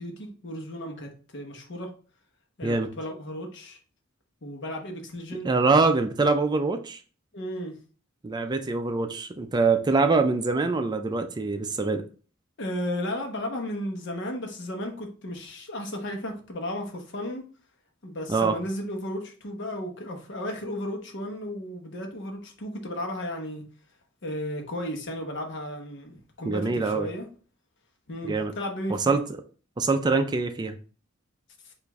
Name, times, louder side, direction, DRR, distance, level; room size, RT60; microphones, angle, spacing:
voice 1, 0.0-1.9 2.6-3.8 4.4-5.5 7.3-7.8 12.6-17.4 18.0-23.6 24.2-27.2 28.1-29.0, left 1 dB, 65° left, 2 dB, 1.0 m, -34 dB
voice 2, 5.4-7.0 8.2-12.0 18.3-18.5 26.4-27.1 28.2-28.5 29.1-29.2 29.8-30.8, right 3 dB, 20° right, 7 dB, 0.4 m, -24 dB
5.0 x 2.6 x 3.5 m, 0.39 s
head